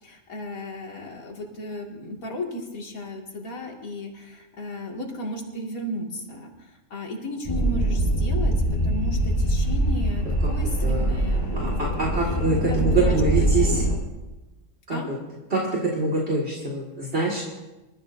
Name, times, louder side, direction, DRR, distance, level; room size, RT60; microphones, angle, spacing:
voice 1, 0.0-8.5 8.8-11.9 12.3-12.4 12.6-14.0 14.9-15.1 17.3-17.5, left 1 dB, 85° left, 0 dB, 2.6 m, -35 dB
sound 1, 7.5-14.0, right 1 dB, 15° left, 5.1 m, -23 dB
voice 2, 10.8-11.1 11.5-13.8 14.9-15.2 15.5-17.5, right 3 dB, 50° right, -4 dB, 2.2 m, -25 dB
27.0 x 13.0 x 2.6 m, 1.1 s
omnidirectional pair, 1.4 m